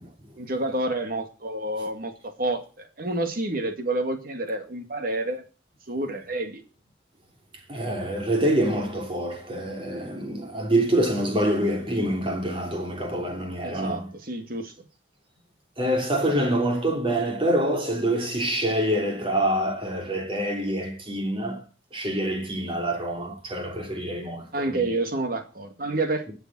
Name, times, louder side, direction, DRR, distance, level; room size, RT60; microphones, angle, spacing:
voice 1, 0.4-5.4 5.9-6.6 13.6-14.7 24.5-26.3, right 2 dB, 50° right, 2.0 m, -29 dB
voice 2, 7.7-14.1 15.8-21.6 21.9-24.8, right 1 dB, 30° right, 3.0 m, -26 dB
19.5 x 7.0 x 6.1 m
head